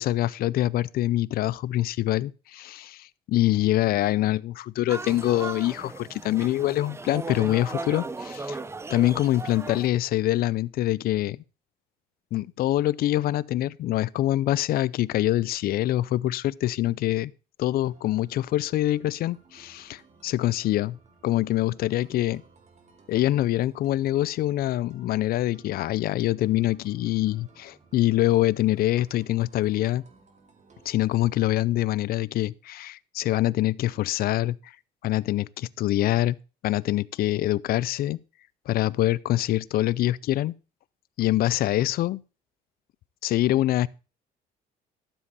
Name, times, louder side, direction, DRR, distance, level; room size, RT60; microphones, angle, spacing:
voice 1, 0.0-8.6 8.9-11.4 12.3-17.3 17.6-21.0 21.2-22.4 23.1-30.0 30.9-34.7 35.0-36.4 36.6-38.2 38.7-40.5 41.2-42.2 43.2-43.9, left 14 dB, 65° left, 0.5 m, -25 dB
sound 1, 4.9-9.9, right 3 dB, 15° right, 0.6 m, -36 dB
sound 2, 17.8-31.6, right 4 dB, 45° right, 2.1 m, -57 dB
12.5 x 7.4 x 4.1 m
cardioid pair, 110°, 17 cm